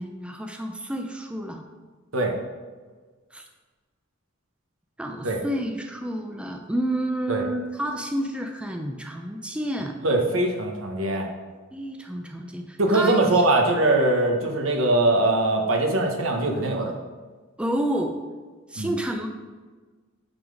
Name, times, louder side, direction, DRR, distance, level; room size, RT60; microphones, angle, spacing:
voice 1, 0.0-1.6 3.3-3.4 5.0-10.0 11.7-13.2 17.6-18.1 18.7-19.3, right 1 dB, 5° right, 3 dB, 0.4 m, -29 dB
voice 2, 10.0-11.3 12.8-16.9 18.8-18.9, right 2 dB, 75° right, 2 dB, 1.2 m, -22 dB
8.7 x 3.9 x 5.1 m, 1.4 s
head